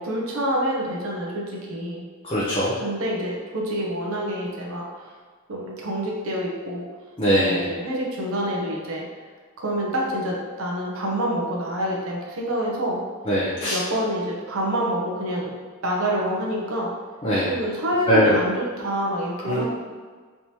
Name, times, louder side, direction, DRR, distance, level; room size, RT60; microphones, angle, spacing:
voice 1, 0.0-2.0 2.8-5.1 5.5-6.9 7.4-9.1 9.6-13.0 13.6-15.6 15.8-16.9 17.5-19.7, equal, 80° right, -3 dB, 0.7 m, -27 dB
voice 2, 2.2-2.7 7.2-7.6 13.3-13.8 17.2-17.5 18.1-18.4 19.4-19.7, equal, 25° left, -8 dB, 0.5 m, -21 dB
3.4 x 2.9 x 2.8 m, 1.5 s
head